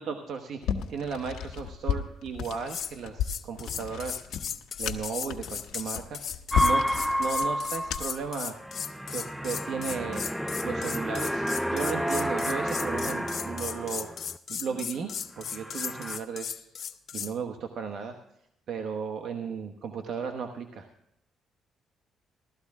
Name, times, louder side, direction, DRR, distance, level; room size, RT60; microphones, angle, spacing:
voice 1, 0.0-4.3 4.8-8.6 9.1-10.2 10.6-16.7 17.1-18.1 18.7-20.9, right 6 dB, 70° right, 5 dB, 1.1 m, -35 dB
sound 1, 0.6-8.3, left 9 dB, 85° left, 1.1 m, -34 dB
sound 2, 2.4-2.9 3.2-17.3, left 8 dB, 55° left, 0.7 m, -36 dB
sound 3, 6.5-14.4 14.7-15.1 15.5-16.2, equal, ahead, 0.4 m, -30 dB
15.5 x 13.0 x 3.6 m, 0.79 s
cardioid pair, 90°, 0 cm